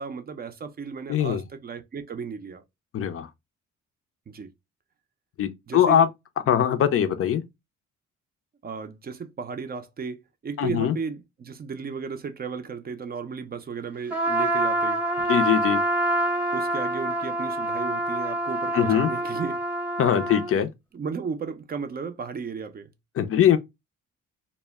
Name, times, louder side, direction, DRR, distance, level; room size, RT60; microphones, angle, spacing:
voice 1, 0.0-2.6 4.3-4.5 5.7-6.0 8.6-15.0 16.5-19.6 20.9-22.9, right 5 dB, 30° right, 0.5 m, -34 dB
voice 2, 1.1-1.4 2.9-3.3 5.4-6.1 6.5-7.4 10.6-10.9 15.3-15.8 18.7-19.1 20.0-20.7 23.2-23.6, left 9 dB, 50° left, 0.5 m, -21 dB
Trumpet, 14.1-20.5, right 1 dB, 5° right, 0.8 m, -26 dB
2.1 x 2.1 x 3.3 m
cardioid pair, 90°, 30 cm